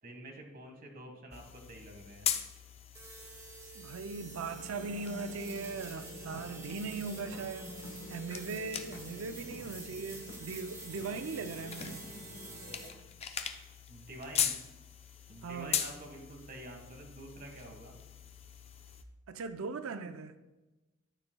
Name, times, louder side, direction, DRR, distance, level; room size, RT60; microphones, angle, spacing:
voice 1, 0.0-2.3 13.9-14.6 15.3-17.9, right 1 dB, 45° right, 1.5 m, -48 dB
sound 1, 1.3-19.0, left 8 dB, 30° left, 0.5 m, -41 dB
sound 2, 2.9-12.9, right 3 dB, 15° right, 1.2 m, -48 dB
voice 2, 3.7-7.7 8.1-12.2 15.4-15.8 19.3-20.4, right 4 dB, 90° right, 0.5 m, -39 dB
sound 3, 4.2-13.1, left 1 dB, 55° left, 1.2 m, -49 dB
13.0 x 8.7 x 2.2 m
head